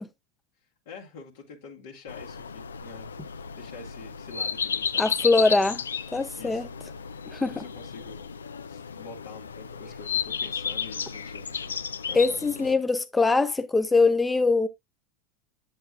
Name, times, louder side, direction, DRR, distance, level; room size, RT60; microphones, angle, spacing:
voice 1, 0.9-5.8 6.3-6.6 7.1-8.3 8.7-11.8 12.1-12.4, left 4 dB, 70° left, 1.9 m, -46 dB
sound 1, 2.1-12.7, left 6 dB, 85° left, 0.5 m, -33 dB
voice 2, 5.0-5.8 6.1-6.7 7.3-7.6 12.1-14.7, left 3 dB, 10° left, 0.6 m, -22 dB
7.9 x 7.5 x 2.4 m
hypercardioid pair, 90°, 0 cm